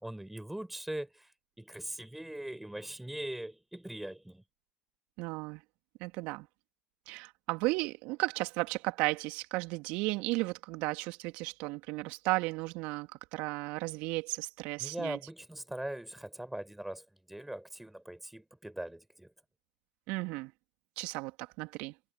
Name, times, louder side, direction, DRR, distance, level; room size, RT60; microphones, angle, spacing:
voice 1, 0.0-1.3 1.6-4.4 14.8-19.3, right 1 dB, 5° right, 4.7 m, -41 dB
voice 2, 5.2-5.6 6.0-6.5 7.1-15.2 20.1-20.5 21.0-21.9, right 24 dB, 60° right, 2.9 m, -34 dB
figure-of-eight pair, 70°, 3 cm